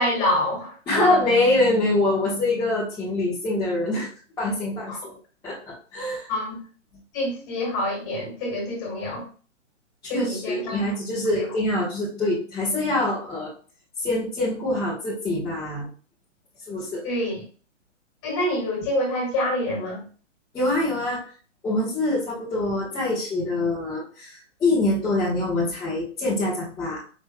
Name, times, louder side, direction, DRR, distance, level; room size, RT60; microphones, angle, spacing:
voice 1, 0.0-1.2 4.9-5.0 6.3-6.6 7.1-9.2 10.1-10.8 17.0-17.3 18.2-20.0, left 1 dB, 30° left, -1 dB, 2.1 m, -26 dB
voice 2, 0.9-4.1 4.4-5.1 5.4-6.3 10.0-13.5 14.0-15.9 16.7-17.0 20.5-21.2 21.6-27.0, left 2 dB, 10° left, -10 dB, 1.2 m, -24 dB
5.1 x 3.3 x 2.2 m, 0.38 s
hypercardioid pair, 135°, 38 cm